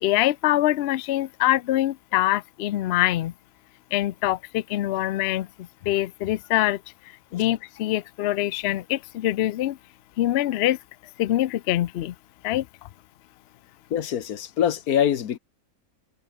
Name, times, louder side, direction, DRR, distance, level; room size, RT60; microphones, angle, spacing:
voice 1, 0.0-3.3 3.9-6.8 7.3-9.8 10.2-10.8 11.2-12.1 12.4-12.7, left 14 dB, 65° left, 0.6 m, -24 dB
voice 2, 13.9-15.4, left 9 dB, 85° left, 1.5 m, -24 dB
omnidirectional pair, 1.5 m